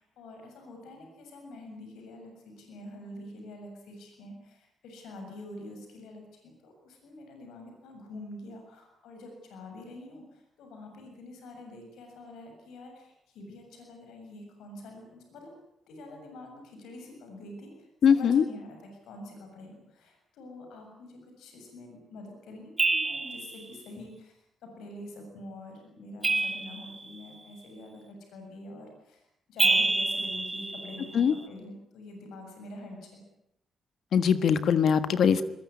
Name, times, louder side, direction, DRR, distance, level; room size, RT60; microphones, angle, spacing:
voice 1, 0.0-15.5 15.9-24.3 24.6-29.2 29.5-33.3, left 1 dB, 90° left, 3 dB, 7.2 m, -46 dB
voice 2, 18.0-18.4 31.1-31.3 34.1-35.4, left 7 dB, 70° left, 12 dB, 1.5 m, -22 dB
sound 1, 22.8-23.6 26.2-27.3 29.6-31.3, right 3 dB, 25° right, 4.8 m, -27 dB
21.5 x 20.5 x 9.8 m, 0.79 s
cardioid pair, 80°, 0 cm